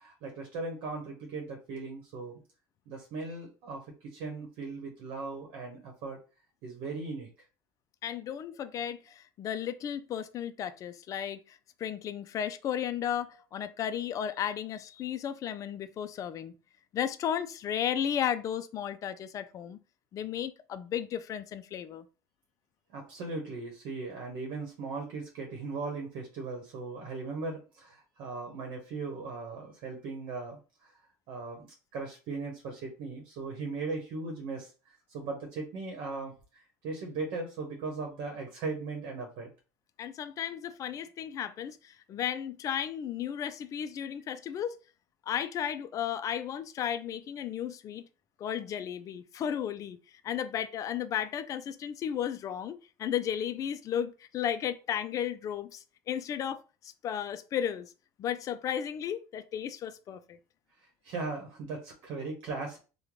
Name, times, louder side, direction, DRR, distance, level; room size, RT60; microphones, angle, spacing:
voice 1, 0.0-2.4 2.9-6.2 6.6-7.3 22.9-30.9 31.3-39.5 61.0-62.8, right 3 dB, 65° right, 1.0 m, -38 dB
voice 2, 8.0-16.5 16.9-19.8 20.1-22.1 40.0-44.8 45.3-48.1 48.4-50.0 50.2-57.9 58.2-60.4, left 9 dB, 40° left, 0.4 m, -34 dB
3.0 x 2.2 x 3.7 m
supercardioid pair, 115°, 9 cm